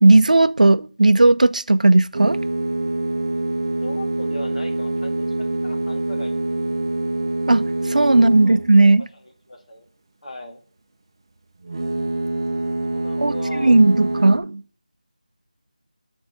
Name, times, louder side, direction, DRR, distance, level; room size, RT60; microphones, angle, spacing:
voice 1, 0.0-2.4 7.5-9.0 13.2-14.6, right 2 dB, 80° right, 0.4 m, -15 dB
sound 1, 2.1-8.9 11.6-14.4, right 2 dB, 35° right, 0.6 m, -25 dB
voice 2, 3.8-6.9 8.4-8.6 9.5-9.9 10.2-10.6 12.7-13.8, left 1 dB, 65° left, 2.2 m, -38 dB
7.2 x 4.6 x 6.3 m
figure-of-eight pair, 175°, 4 cm